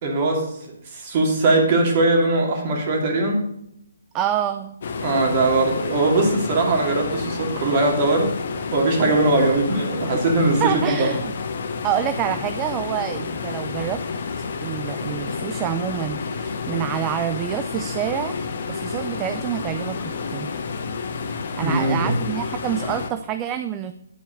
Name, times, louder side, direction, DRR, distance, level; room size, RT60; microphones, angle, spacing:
voice 1, 0.0-0.5 0.9-3.4 5.0-8.3 8.7-11.1 21.6-22.1, right 2 dB, 35° right, 0 dB, 2.5 m, -20 dB
voice 2, 4.1-4.7 10.6-11.3 11.8-14.0 14.4-18.4 18.7-20.6 21.6-23.9, right 10 dB, 20° right, 9 dB, 0.4 m, -27 dB
sound 1, 4.8-23.1, left 5 dB, 50° left, 1.0 m, -30 dB
9.6 x 4.6 x 6.4 m, 0.75 s
hypercardioid pair, 150°, 0 cm